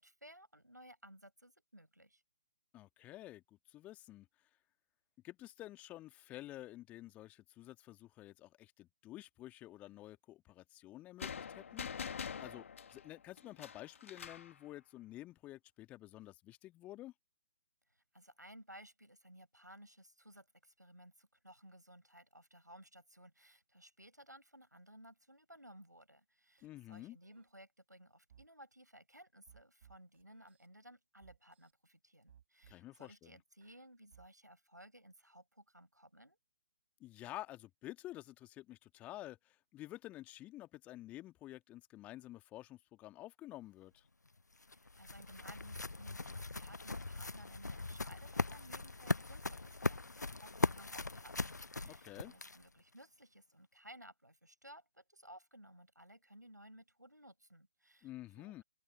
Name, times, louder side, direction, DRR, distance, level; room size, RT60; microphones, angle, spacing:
voice 1, 0.0-2.2 17.9-36.4 44.7-58.6, equal, 85° right, 5.7 m, -58 dB
voice 2, 2.7-4.3 5.2-11.9 12.4-12.6 12.9-17.1 26.6-27.2 32.7-33.4 37.0-44.1 51.8-52.3 58.0-58.6, left 15 dB, 15° left, 2.1 m, -50 dB
sound 1, 11.2-14.5, left 7 dB, 50° left, 1.9 m, -45 dB
sound 2, 26.6-26.7 26.9-27.5 28.3-28.5 29.5-30.7 31.2-31.7 32.3-33.1 33.6-34.3, right 9 dB, 40° right, 3.8 m, -64 dB
sound 3, 44.3-52.8, left 3 dB, 75° left, 0.7 m, -39 dB
open air
figure-of-eight pair, 135°, 9 cm